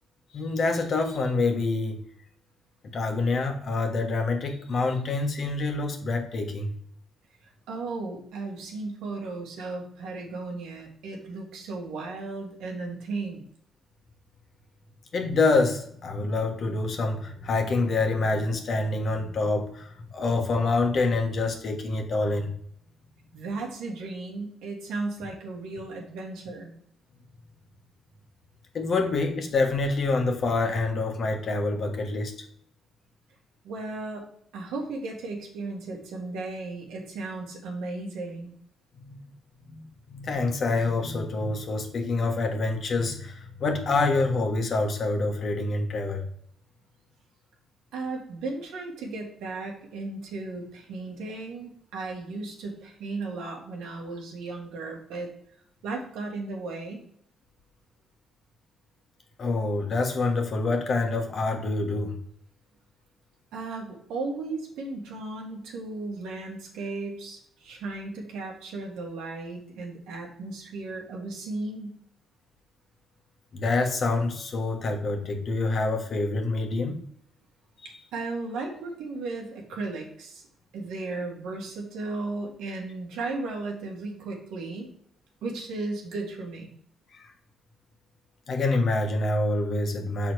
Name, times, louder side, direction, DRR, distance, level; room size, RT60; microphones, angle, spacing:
voice 1, 0.3-2.0 2.9-6.7 15.1-22.5 28.7-32.3 38.9-39.2 39.7-39.8 40.1-46.3 59.4-62.2 73.5-77.0 87.1-87.3 88.5-90.3, left 3 dB, 50° left, 3 dB, 1.3 m, -26 dB
voice 2, 7.4-13.4 23.3-26.7 33.6-38.5 47.9-55.3 55.8-57.0 63.5-72.0 77.8-80.4 80.7-84.9 85.4-86.7, right 3 dB, 90° right, 0 dB, 1.7 m, -35 dB
6.1 x 4.0 x 4.7 m, 0.65 s
cardioid pair, 90°, 0 cm